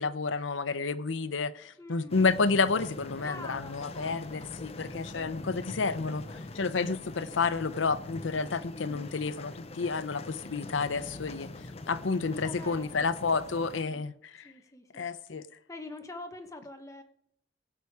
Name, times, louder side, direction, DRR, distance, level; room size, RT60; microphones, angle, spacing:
voice 1, 0.0-6.2 6.5-11.5 11.9-14.5 14.9-15.5, left 4 dB, 80° left, 0.7 m, -30 dB
voice 2, 1.8-2.3 3.2-4.5 4.9-5.6 8.7-9.1 12.3-13.1 13.5-14.0 14.4-15.1 15.7-17.0, left 2 dB, 15° left, 1.1 m, -46 dB
sound 1, 2.1-13.8, left 2 dB, 30° left, 0.8 m, -43 dB
15.5 x 8.3 x 4.8 m
head